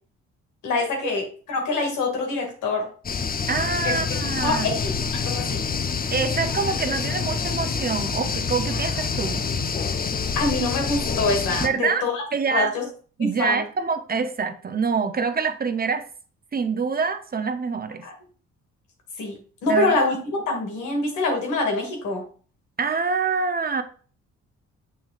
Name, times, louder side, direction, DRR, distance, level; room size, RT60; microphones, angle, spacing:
voice 1, 0.6-2.9 3.8-3.9 4.4-4.9 5.2-5.6 10.4-12.9 13.2-13.6 18.0-18.1 19.2-22.2, left 3 dB, 85° left, 2.2 m, -25 dB
sound 1, 3.0-11.7, left 5 dB, 30° left, 0.6 m, -27 dB
voice 2, 3.5-4.7 6.1-9.4 11.6-12.0 12.3-12.7 13.2-16.1 16.5-18.0 19.7-19.9 22.8-23.8, right 5 dB, 30° right, 0.7 m, -25 dB
7.1 x 6.1 x 2.5 m
cardioid pair, 90°, 30 cm